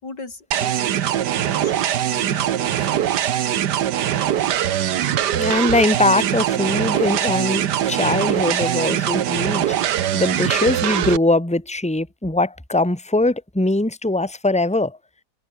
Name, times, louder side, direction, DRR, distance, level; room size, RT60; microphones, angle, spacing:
voice 1, 0.0-1.7 2.1-3.3, left 3 dB, 80° left, 5.0 m, -40 dB
sound 1, 0.5-11.2, right 11 dB, 75° right, 1.6 m, -22 dB
voice 2, 5.3-15.0, left 2 dB, 5° left, 2.5 m, -21 dB
omnidirectional pair, 1.8 m